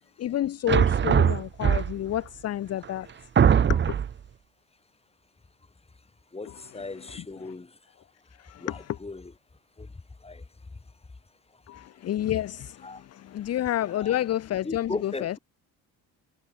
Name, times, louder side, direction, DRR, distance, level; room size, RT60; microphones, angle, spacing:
voice 1, 0.2-3.1 3.7-4.0 6.5-7.5 8.4-9.0 11.7-15.3, left 12 dB, 40° left, 0.7 m, -30 dB
sound 1, 0.7-2.2 2.8-2.9 3.4-4.2, right 8 dB, 30° right, 0.9 m, -21 dB
voice 2, 6.3-7.7 8.6-9.3 9.8-9.9 10.2-10.4 12.8-13.0 13.9-14.2 14.6-15.4, left 3 dB, 15° left, 4.4 m, -37 dB
cardioid pair, 105°, 37 cm